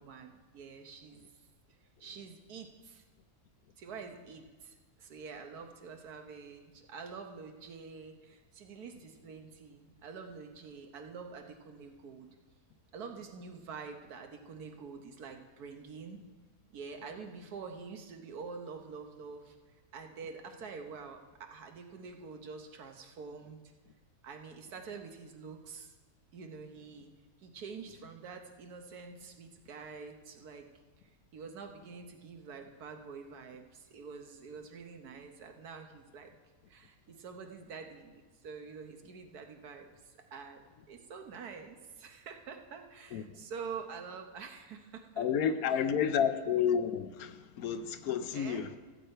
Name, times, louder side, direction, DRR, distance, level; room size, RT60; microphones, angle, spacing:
voice 1, 0.0-1.3 2.0-3.0 3.8-12.3 12.9-16.2 16.7-19.6 19.9-23.6 24.2-25.9 26.3-27.1 27.4-30.7 31.3-36.3 36.7-40.6 40.9-46.3 48.3-48.6, right 5 dB, 90° right, 5 dB, 1.5 m, -47 dB
voice 2, 45.2-48.8, left 8 dB, 75° left, 11 dB, 1.1 m, -30 dB
15.5 x 8.1 x 4.4 m, 1.3 s
omnidirectional pair, 1.6 m